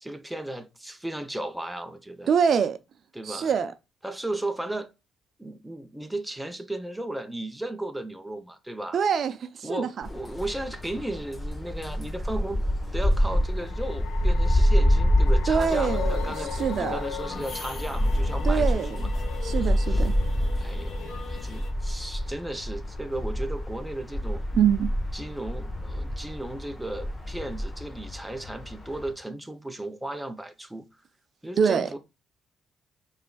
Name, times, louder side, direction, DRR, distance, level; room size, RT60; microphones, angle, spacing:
voice 1, 0.0-2.3 3.1-3.5 4.0-4.9 5.4-9.0 9.6-12.6 12.9-19.1 19.6-20.1 20.6-24.4 25.1-30.9 31.4-32.0, right 1 dB, 5° right, 0.6 m, -35 dB
voice 2, 2.3-2.8 3.2-3.7 8.9-10.1 15.5-17.0 18.4-19.1 19.4-20.1 24.5-24.9 31.6-31.9, right 7 dB, 60° right, 0.5 m, -25 dB
sound 1, 10.0-29.1, equal, 25° left, 0.9 m, -27 dB
sound 2, 10.1-10.8 13.2-24.5, left 8 dB, 80° left, 0.4 m, -44 dB
sound 3, 15.7-21.7, left 7 dB, 55° left, 2.2 m, -39 dB
5.2 x 3.3 x 2.2 m
cardioid pair, 90°, 0 cm